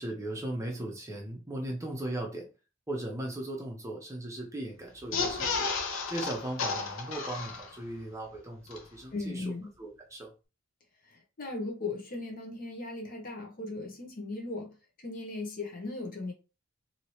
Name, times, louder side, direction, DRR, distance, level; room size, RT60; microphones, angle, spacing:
voice 1, 0.0-2.5 2.9-5.7 6.1-10.3, right 1 dB, 15° right, 0.7 m, -38 dB
sound 1, 5.0-8.0 8.3-8.4 8.7-8.8, left 4 dB, 75° left, 0.6 m, -33 dB
voice 2, 9.1-9.7 11.1-14.7 15.0-16.3, left 2 dB, 45° left, 0.8 m, -37 dB
2.8 x 2.8 x 3.0 m
head